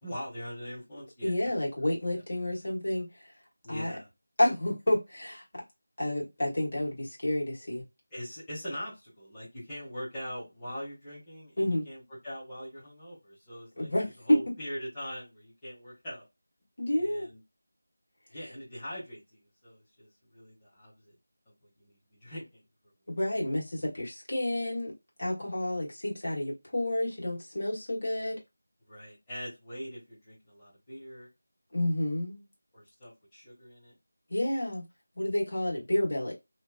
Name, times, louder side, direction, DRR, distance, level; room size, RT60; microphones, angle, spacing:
voice 1, 0.0-1.5 2.1-2.2 3.6-4.1 8.1-13.9 14.2-16.3 17.0-17.4 18.3-21.2 21.4-22.6 28.8-31.3 32.7-33.9, equal, 10° left, 1.5 m, -42 dB
voice 2, 1.2-3.3 3.7-3.9 4.4-5.4 6.0-7.8 11.6-11.9 13.8-14.4 16.8-17.3 23.1-24.9 25.2-28.4 31.7-32.4 34.3-34.8 35.2-36.3, left 1 dB, 55° left, 1.7 m, -29 dB
3.1 x 2.7 x 2.4 m
figure-of-eight pair, 175°, 0 cm